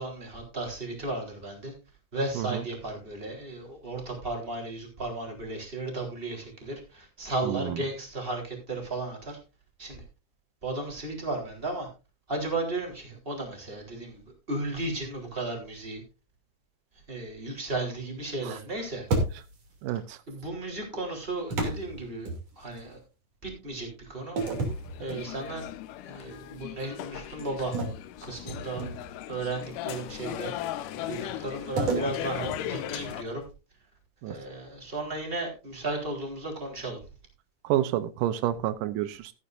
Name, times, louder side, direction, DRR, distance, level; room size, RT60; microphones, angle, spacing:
voice 1, 0.0-1.7 2.1-9.4 9.8-10.0 10.6-11.9 12.3-14.2 14.5-16.0 17.1-19.1 20.3-22.3 22.6-23.0 23.4-24.4 25.0-25.7 26.0-27.8 28.2-28.9 29.3-30.6 30.9-33.4 34.3-37.0, right 2 dB, 15° right, 1 dB, 3.8 m, -34 dB
voice 2, 7.4-7.8 18.5-18.6 19.8-20.2 34.2-34.4 37.6-39.3, right 12 dB, 85° right, 13 dB, 2.4 m, -29 dB
sound 1, 19.1-19.8 21.5-22.9 24.4-25.7 26.2-26.4 27.7-29.2 31.8-33.4, right 2 dB, 55° right, 3.9 m, -32 dB
sound 2, 24.4-33.2, left 12 dB, 85° left, 2.3 m, -38 dB
14.0 x 11.5 x 2.6 m, 0.30 s
omnidirectional pair, 3.7 m